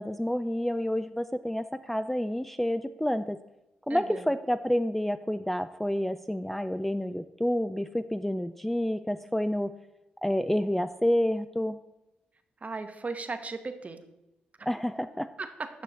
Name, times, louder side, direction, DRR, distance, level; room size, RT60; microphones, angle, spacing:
voice 1, 0.0-3.4 3.9-9.7 10.2-11.8 14.7-15.3, equal, 5° left, 11 dB, 0.4 m, -29 dB
voice 2, 3.9-4.3 12.6-14.0 14.6-14.7 15.4-15.7, right 3 dB, 40° right, 8 dB, 1.1 m, -36 dB
9.3 x 6.2 x 4.1 m, 0.91 s
hypercardioid pair, 45°, 4 cm